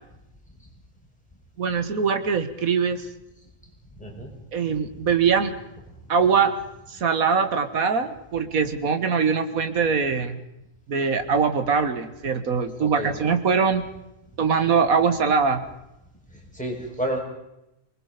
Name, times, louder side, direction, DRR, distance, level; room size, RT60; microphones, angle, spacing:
voice 1, 1.6-3.1 4.5-5.6 6.1-6.5 6.9-10.4 10.9-13.9 14.4-15.6, right 5 dB, 80° right, 10 dB, 2.0 m, -22 dB
voice 2, 4.0-4.3 4.9-5.0 12.8-13.2 16.5-17.2, right 1 dB, 5° left, -1 dB, 5.5 m, -30 dB
24.5 x 21.0 x 5.1 m, 0.89 s
omnidirectional pair, 1.4 m